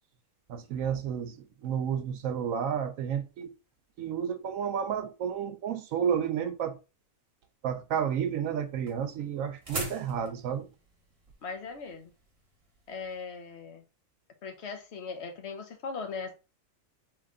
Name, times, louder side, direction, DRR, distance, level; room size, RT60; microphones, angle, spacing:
voice 1, 0.5-3.5 4.0-6.8 7.6-10.7, right 8 dB, 75° right, 1.0 m, -31 dB
sound 1, 8.0-13.2, right 1 dB, 25° right, 1.0 m, -42 dB
voice 2, 11.4-12.1 12.9-13.8 14.4-16.3, left 4 dB, 55° left, 1.1 m, -39 dB
3.9 x 3.2 x 3.6 m
omnidirectional pair, 1.5 m